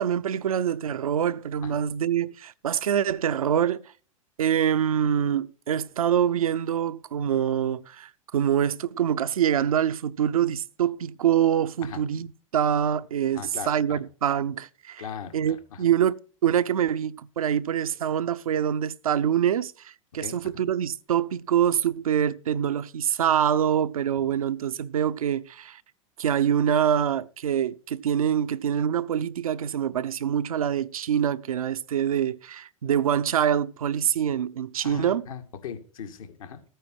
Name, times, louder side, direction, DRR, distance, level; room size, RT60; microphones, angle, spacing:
voice 1, 0.0-3.9 4.4-12.3 12.5-15.0 15.3-25.8 26.2-35.3, right 9 dB, 85° right, 0.7 m, -25 dB
voice 2, 13.3-14.0 15.0-15.8 20.2-20.4 34.8-36.6, left 7 dB, 75° left, 2.1 m, -39 dB
13.5 x 9.2 x 4.6 m
hypercardioid pair, 105°, 18 cm